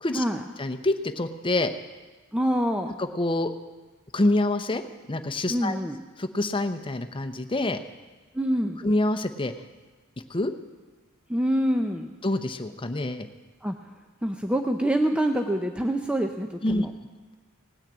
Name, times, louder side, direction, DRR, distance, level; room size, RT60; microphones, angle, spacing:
voice 1, 0.6-1.7 3.0-3.5 4.1-4.8 5.1-5.8 6.2-7.8 8.8-9.5 10.3-10.5 12.2-13.3 16.6-16.8, left 2 dB, 25° left, 8 dB, 0.8 m, -26 dB
voice 2, 2.3-3.0 5.5-6.0 8.3-8.8 11.3-12.1 13.6-13.8 14.2-16.9, equal, 5° right, 4 dB, 0.6 m, -26 dB
18.0 x 6.5 x 8.8 m, 1.3 s
head